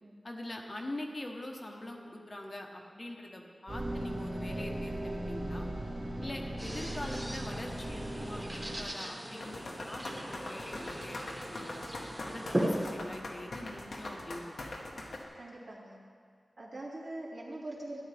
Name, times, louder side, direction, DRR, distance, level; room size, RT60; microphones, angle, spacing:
voice 1, 0.2-5.7 6.2-11.8 12.2-14.7, left 1 dB, 40° left, 1 dB, 1.0 m, -44 dB
sound 1, 3.7-8.9, right 1 dB, 45° right, 2.5 m, -38 dB
sound 2, 6.6-12.9, right 1 dB, 15° right, 1.3 m, -38 dB
sound 3, 9.4-15.2, left 2 dB, 75° left, 1.2 m, -42 dB
voice 2, 15.3-16.0 16.6-18.0, right 1 dB, 65° right, -5 dB, 2.2 m, -42 dB
13.0 x 9.4 x 3.4 m, 2.1 s
wide cardioid pair, 90°, 0 cm